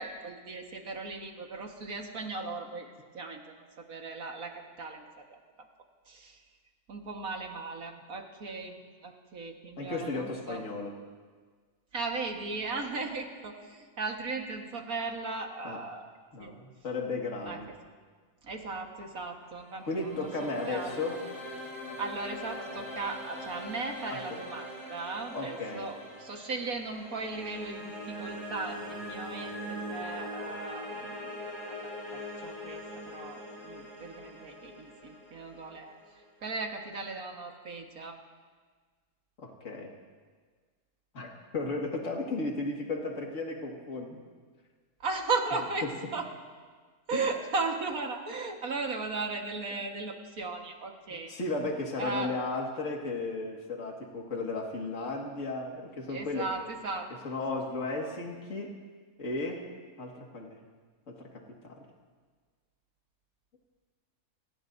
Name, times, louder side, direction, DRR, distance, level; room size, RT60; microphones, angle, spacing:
voice 1, 0.0-5.4 6.1-6.4 6.9-10.7 11.9-16.1 16.4-16.5 17.5-17.6 18.4-20.3 20.6-20.9 22.0-28.8 29.1-31.3 32.1-36.0 36.4-38.2 45.0-46.3 47.1-51.3 52.0-52.3 56.1-57.1, right 3 dB, 65° right, 2 dB, 2.0 m, -37 dB
voice 2, 9.8-11.0 15.6-15.8 16.3-17.7 19.8-21.2 22.7-22.9 24.1-24.2 25.3-25.9 39.4-39.9 41.1-41.3 41.5-44.2 45.8-45.9 47.1-47.2 51.3-56.5 57.2-58.7 59.2-59.6 60.0-60.6 61.1-61.8, left 3 dB, 55° left, -1 dB, 2.3 m, -35 dB
sound 1, 19.4-36.5, equal, 85° left, 7.2 m, -42 dB
28.0 x 19.0 x 2.7 m, 1.5 s
omnidirectional pair, 1.6 m